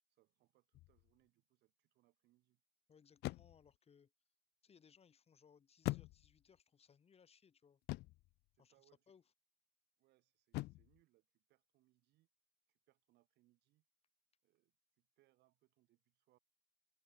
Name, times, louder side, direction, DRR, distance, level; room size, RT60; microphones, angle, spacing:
voice 1, 0.1-2.6 8.6-9.1 10.0-12.3 12.7-13.9 14.4-16.4, right 17 dB, 80° right, 7.5 m, -78 dB
sound 1, 0.7-1.1 3.2-3.8 5.8-6.6 7.9-8.3 10.5-11.0, left 20 dB, 80° left, 0.5 m, -43 dB
voice 2, 2.9-4.1 4.6-7.8 8.6-9.2, left 6 dB, 35° left, 3.0 m, -68 dB
cardioid pair, 110°, 17 cm